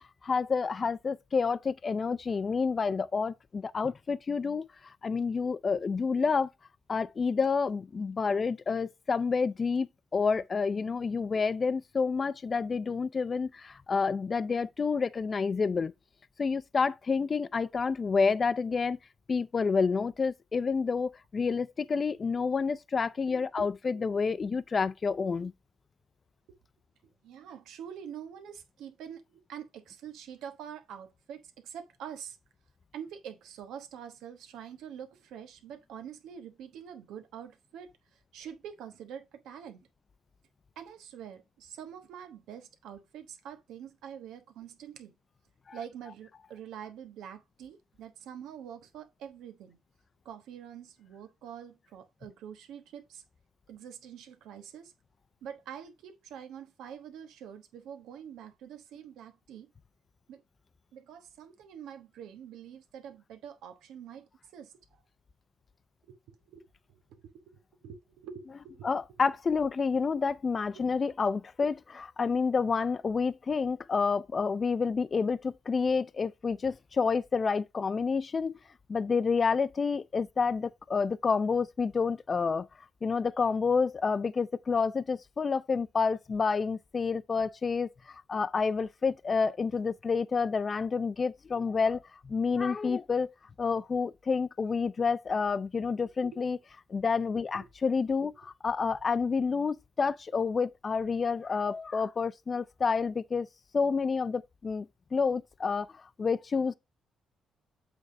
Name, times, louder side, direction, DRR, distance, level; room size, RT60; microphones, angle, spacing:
voice 1, 0.0-6.5 6.9-9.9 10.1-15.9 16.4-19.0 19.3-25.5 45.7-45.8 68.8-78.6 78.9-82.7 83.0-93.3 93.6-96.6 96.9-103.5 103.7-106.7, left 5 dB, 35° left, 0.5 m, -29 dB
voice 2, 23.4-24.1 26.5-26.6 27.2-32.4 32.9-39.9 40.7-45.1 45.7-49.8 50.2-53.2 53.7-54.9 55.4-59.7 60.3-60.4 60.9-65.0 66.1-66.2 66.4-66.6 66.9-68.9 70.7-70.8, right 8 dB, 85° right, 1.1 m, -46 dB
8.0 x 3.5 x 4.9 m
cardioid pair, 90°, 0 cm